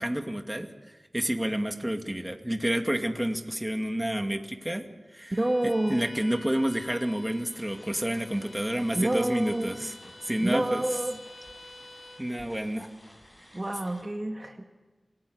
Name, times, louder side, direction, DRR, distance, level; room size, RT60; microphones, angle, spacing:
voice 1, 0.0-4.8 5.1-5.3 5.6-10.0 10.2-10.8 12.2-12.9, right 1 dB, 15° right, 5 dB, 2.3 m, -29 dB
Bowed string instrument, 5.3-12.3, left 2 dB, 65° left, 3.9 m, -49 dB
voice 2, 5.3-6.0 8.9-9.9 10.4-11.2 13.5-14.7, right 1 dB, 35° right, 4 dB, 1.7 m, -28 dB
sound 1, 7.5-14.0, left 1 dB, 35° left, 6.7 m, -54 dB
27.0 x 18.0 x 6.5 m, 1.3 s
wide cardioid pair, 45°, 0 cm